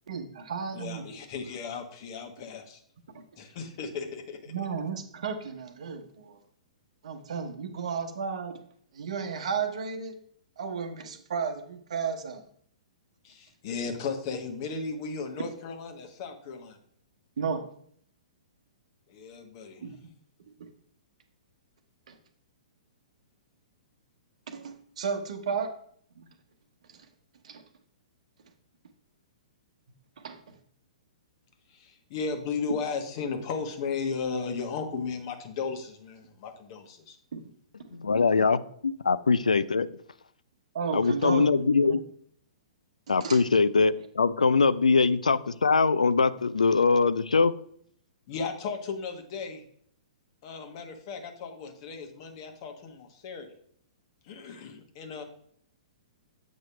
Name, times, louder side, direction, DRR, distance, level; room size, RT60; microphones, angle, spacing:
voice 1, 0.1-1.1 4.5-6.4 7.0-8.6 8.9-10.2 10.6-12.4 17.4-17.6 19.8-20.0 22.1-22.2 24.5-25.7 26.2-26.3 26.9-27.1 27.4-27.6 30.2-30.4 37.3-37.4 40.7-42.0 43.1-43.4, right 6 dB, 65° right, 7 dB, 1.0 m, -33 dB
voice 2, 0.7-2.8 3.4-4.5 13.2-16.8 19.1-19.8 31.7-37.2 48.3-49.6 50.4-53.5 54.2-55.2, left 5 dB, 45° left, 5 dB, 1.2 m, -35 dB
voice 3, 37.9-39.9 40.9-42.0 43.1-47.5, left 4 dB, 85° left, 15 dB, 0.4 m, -22 dB
7.3 x 3.1 x 5.6 m, 0.64 s
hypercardioid pair, 120°, 4 cm